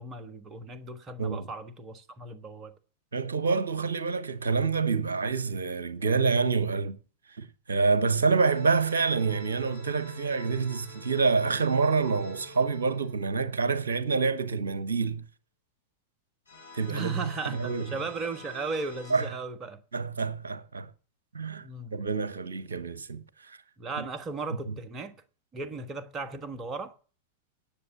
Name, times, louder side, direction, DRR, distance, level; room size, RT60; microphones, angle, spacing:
voice 1, 0.0-2.7 16.9-19.8 21.6-22.0 23.8-25.2 25.5-26.9, right 3 dB, 25° right, 1.3 m, -36 dB
voice 2, 3.1-7.0 7.4-15.3 16.7-18.0 19.1-19.3 19.9-20.9 21.3-21.7 21.9-23.2 24.0-24.1 24.7-24.8, right 4 dB, 70° right, 1.0 m, -27 dB
sound 1, 8.5-13.9 16.5-19.3, left 1 dB, 75° left, 4.7 m, -48 dB
10.5 x 7.0 x 8.9 m
figure-of-eight pair, 90°, 0 cm